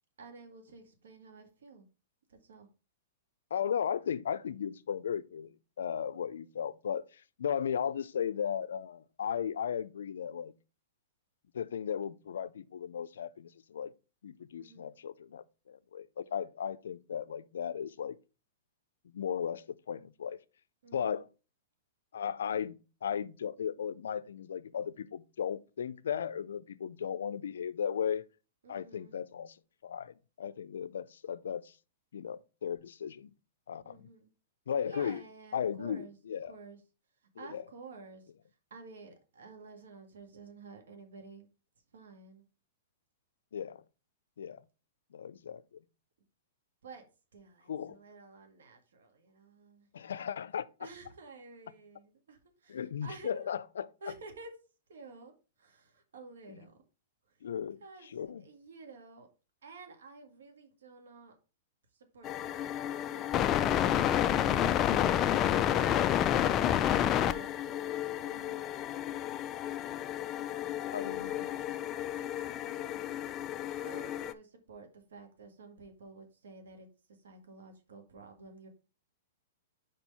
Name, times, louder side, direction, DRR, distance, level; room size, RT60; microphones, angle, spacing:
voice 1, 0.2-1.8 2.3-2.7 14.6-14.9 20.8-21.2 28.6-29.2 33.8-34.3 34.8-36.2 36.5-36.8 37.4-38.3 38.7-41.5 41.9-42.4 46.8-47.0 47.3-49.9 50.8-53.6 54.0-54.5 54.9-56.8 57.3-57.4 57.8-59.3 59.6-61.4 61.9-63.8 66.6-68.6 71.1-71.6 71.9-73.1 73.8-78.7, right 3 dB, 90° right, 1.9 m, -52 dB
voice 2, 3.5-10.5 11.5-13.9 14.2-18.2 19.1-20.4 20.9-21.3 22.1-28.2 28.7-29.6 29.8-31.7 32.1-33.3 33.7-34.1 34.7-35.2 35.5-36.5 37.4-37.6 43.5-43.8 44.4-44.6 45.1-45.6 47.7-48.0 49.9-50.9 52.7-53.9 56.5-56.6 57.4-57.8 58.1-58.4 70.9-71.5, left 8 dB, 85° left, 0.5 m, -36 dB
sound 1, 62.2-74.3, left 11 dB, 25° left, 0.4 m, -30 dB
5.1 x 4.5 x 5.5 m
hypercardioid pair, 150°, 0 cm